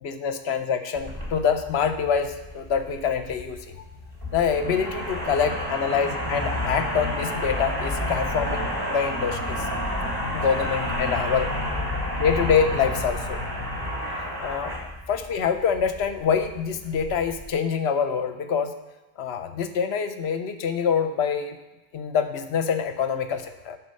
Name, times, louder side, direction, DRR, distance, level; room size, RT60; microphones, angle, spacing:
voice 1, 0.0-3.8 4.3-9.7 10.3-11.5 12.1-13.4 14.1-14.7 15.1-18.7 19.2-21.6 21.9-23.8, left 7 dB, 60° left, 8 dB, 0.8 m, -25 dB
sound 1, 0.9-17.5, left 1 dB, 20° right, 1.5 m, -30 dB
9.5 x 4.3 x 6.3 m, 1.1 s
omnidirectional pair, 1.3 m